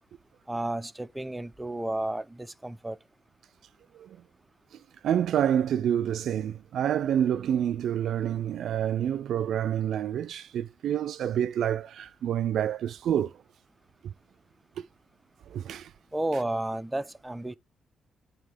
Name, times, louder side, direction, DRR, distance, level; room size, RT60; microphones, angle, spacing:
voice 1, 0.5-3.0 16.1-17.5, right 1 dB, 10° right, 0.6 m, -32 dB
voice 2, 5.0-13.3 15.5-15.9, right 10 dB, 75° right, 0.3 m, -28 dB
9.2 x 3.7 x 4.9 m
cardioid pair, 70°, 0 cm